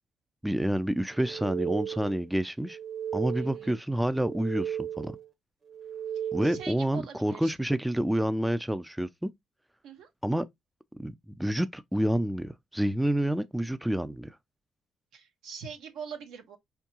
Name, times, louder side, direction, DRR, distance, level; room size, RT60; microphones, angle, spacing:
voice 1, 0.4-2.8 3.1-5.1 6.3-9.3 10.2-10.5 11.0-14.3, right 1 dB, 5° right, 0.3 m, -28 dB
sound 1, 1.1-2.3 2.6-3.8 4.1-5.3 5.7-6.8, right 9 dB, 45° right, 1.1 m, -36 dB
voice 2, 3.4-3.8 6.4-7.5 9.8-10.1 15.1-16.6, right 6 dB, 85° right, 1.2 m, -43 dB
4.5 x 3.5 x 2.9 m
cardioid pair, 90°, 0 cm